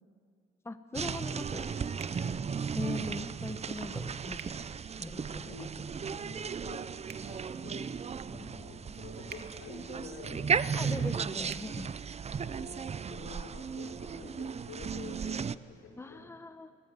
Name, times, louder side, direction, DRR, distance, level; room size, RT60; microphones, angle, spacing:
voice 1, 0.6-1.7 2.7-4.5 5.0-5.6 8.3-8.4 10.8-11.9 16.0-16.7, left 2 dB, 15° left, 9 dB, 1.1 m, -40 dB
sound 1, 0.9-15.5, right 6 dB, 35° right, 0.6 m, -35 dB
sound 2, 2.0-2.2 4.3-4.5 7.0-7.3 9.3-9.5 11.5-11.7, right 7 dB, 55° right, 1.8 m, -47 dB
voice 2, 2.1-2.5 5.1-7.9 8.2-11.1 12.4-16.3, left 4 dB, 80° left, 0 dB, 5.2 m, -48 dB
23.5 x 20.5 x 9.5 m, 2.2 s
cardioid pair, 90°, 20 cm